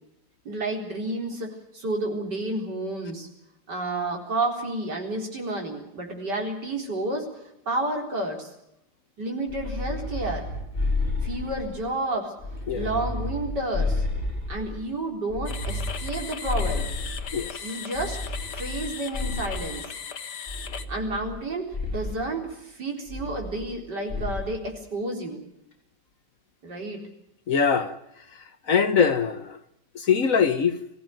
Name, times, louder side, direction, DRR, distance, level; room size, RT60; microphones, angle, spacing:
voice 1, 0.4-3.3 3.7-7.3 7.7-8.5 9.2-10.5 11.2-12.3 12.7-14.0 14.5-16.9 17.6-18.2 18.5-19.9 20.9-25.4 26.6-27.1, right 2 dB, 70° right, 4.8 m, -30 dB
sound 1, 9.5-11.9 12.4-14.8 15.3-17.5 17.9-19.8 20.5-21.4 21.7-22.2 23.1-23.8 24.1-24.6, left 2 dB, 30° left, 3.5 m, -31 dB
sound 2, 15.5-20.9, left 7 dB, 70° left, 1.8 m, -37 dB
voice 2, 27.5-27.9 28.7-29.6 29.9-30.8, left 6 dB, 50° left, 1.4 m, -22 dB
23.0 x 15.5 x 9.1 m
omnidirectional pair, 1.9 m